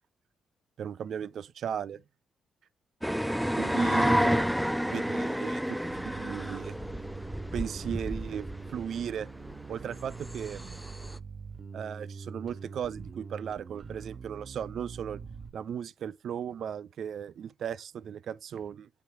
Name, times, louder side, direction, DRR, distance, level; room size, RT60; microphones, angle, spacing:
voice 1, 0.8-2.0 3.6-4.4 4.9-6.7 7.5-8.4 8.7-9.3 9.7-10.8 11.7-15.2 15.5-18.9, right 8 dB, 65° right, 0.4 m, -36 dB
sound 1, 3.0-11.2, equal, ahead, 0.4 m, -30 dB
Bass guitar, 5.9-15.5, right 5 dB, 50° right, 0.9 m, -44 dB
8.5 x 3.1 x 4.5 m
supercardioid pair, 55°, 0 cm